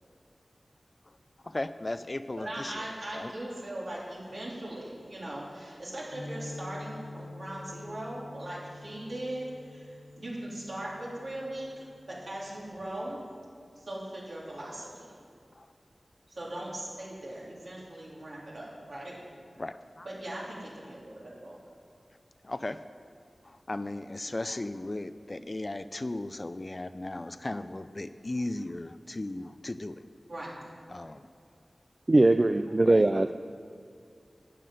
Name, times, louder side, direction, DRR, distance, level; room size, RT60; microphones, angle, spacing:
voice 1, 1.4-2.8 3.1-3.3 15.5-15.7 19.6-20.1 22.4-22.8 23.4-30.0 30.9-31.3 32.8-33.3, left 2 dB, 40° left, 12 dB, 0.5 m, -36 dB
voice 2, 2.4-13.2 13.8-15.1 16.3-19.2 20.0-21.6 30.3-30.6, right 1 dB, 70° right, -6 dB, 3.7 m, -39 dB
sound 1, 6.1-12.9, left 2 dB, 65° left, 1.8 m, -46 dB
voice 3, 32.1-33.3, right 2 dB, 40° right, 9 dB, 0.3 m, -21 dB
12.0 x 5.9 x 9.2 m, 2.4 s
wide cardioid pair, 45°, 0 cm